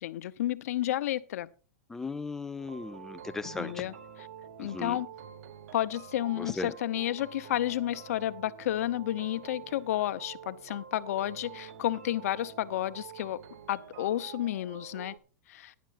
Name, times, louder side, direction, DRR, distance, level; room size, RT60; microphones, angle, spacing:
voice 1, 0.0-1.5 3.4-3.9 4.6-5.1 5.7-13.4 13.7-15.2 15.5-15.7, left 13 dB, 65° left, 0.8 m, -31 dB
voice 2, 1.9-3.9 4.6-5.0 6.4-6.7, left 3 dB, 5° left, 0.4 m, -37 dB
sound 1, 2.6-15.2, right 8 dB, 60° right, 1.3 m, -47 dB
17.0 x 10.5 x 2.5 m
supercardioid pair, 165°, 9 cm